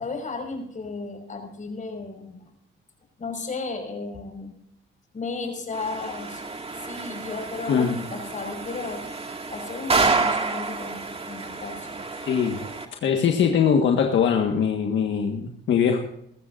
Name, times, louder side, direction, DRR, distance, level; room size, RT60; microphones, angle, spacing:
voice 1, 0.0-2.4 3.2-4.6 5.1-6.4 6.8-9.1 9.5-12.0, left 3 dB, 40° left, 4 dB, 5.8 m, -34 dB
sound 1, 5.7-12.8, right 4 dB, 30° right, 2.3 m, -29 dB
voice 2, 7.7-8.0 12.2-12.6 13.0-16.0, left 7 dB, 70° left, 3 dB, 1.7 m, -21 dB
21.5 x 14.0 x 2.7 m, 0.76 s
cardioid pair, 90°, 20 cm